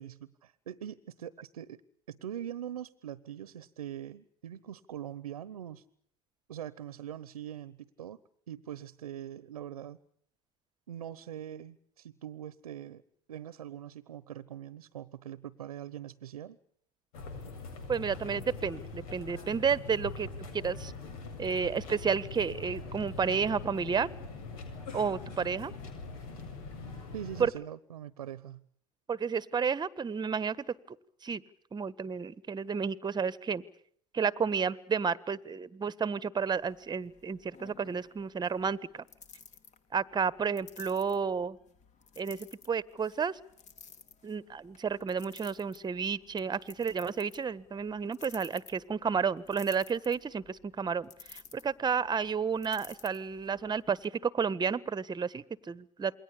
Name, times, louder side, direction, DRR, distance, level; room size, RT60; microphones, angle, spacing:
voice 1, 0.0-1.8 2.1-5.8 6.5-8.2 8.5-10.0 10.9-13.0 13.3-16.6 27.1-28.6, right 10 dB, 90° right, 19 dB, 1.0 m, -42 dB
sound 1, 17.1-27.5, left 3 dB, 75° left, 7.7 m, -43 dB
voice 2, 17.9-20.3 20.5-20.9 21.4-24.1 24.9-25.7 27.4-27.5 29.1-31.0 31.2-31.4 31.7-33.6 34.1-39.0 39.9-41.6 42.2-43.4 44.2-56.1, right 6 dB, 25° right, 18 dB, 1.4 m, -31 dB
sound 2, 36.5-54.1, left 6 dB, 40° left, 3.7 m, -55 dB
28.0 x 22.5 x 8.6 m, 0.64 s
hypercardioid pair, 85°, 18 cm